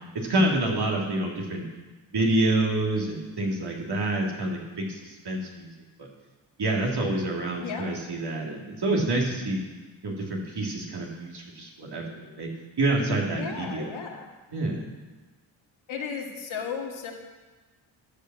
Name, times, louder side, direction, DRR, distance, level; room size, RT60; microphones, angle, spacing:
voice 1, 0.3-1.6 2.1-5.7 6.6-9.6 10.0-12.5 12.8-14.0 14.5-14.9, right 2 dB, 55° right, -1 dB, 2.9 m, -27 dB
voice 2, 13.4-14.3 15.9-17.1, left 6 dB, 70° left, 1 dB, 2.0 m, -34 dB
13.0 x 5.6 x 7.4 m, 1.2 s
supercardioid pair, 55°, 49 cm